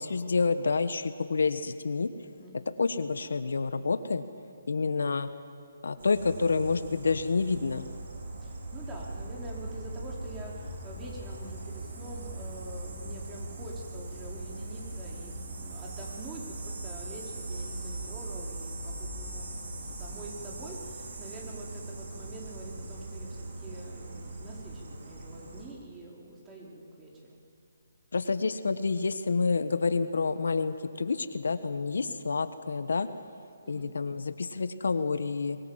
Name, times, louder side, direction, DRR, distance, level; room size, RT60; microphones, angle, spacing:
voice 1, 0.0-2.1 2.8-4.2 4.7-5.3 5.8-7.9 28.1-33.1 33.7-35.6, left 4 dB, 70° left, 11 dB, 1.3 m, -28 dB
voice 2, 2.4-2.8 8.4-27.4 33.6-33.9, right 2 dB, 15° right, -3 dB, 4.9 m, -46 dB
sound 1, 6.0-25.6, right 2 dB, 60° right, 5.7 m, -40 dB
24.5 x 22.0 x 7.5 m, 2.4 s
figure-of-eight pair, 145°, 0 cm